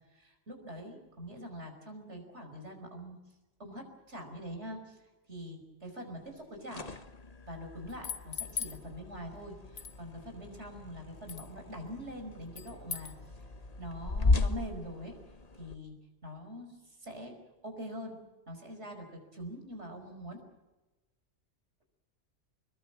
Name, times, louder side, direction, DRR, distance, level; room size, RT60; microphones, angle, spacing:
voice 1, 0.1-3.2 3.6-6.9 7.5-13.1 13.4-13.5 13.8-15.2 15.5-16.0 16.2-17.4 17.6-18.2 18.5-20.4, equal, 65° right, 4 dB, 5.5 m, -44 dB
sound 1, 6.4-15.8, left 3 dB, 35° left, 1.1 m, -36 dB
sound 2, 7.9-8.8 9.8-10.0 11.3-11.5 12.6-13.2, left 7 dB, 80° left, 1.6 m, -39 dB
26.5 x 21.5 x 7.6 m, 1.1 s
omnidirectional pair, 1.3 m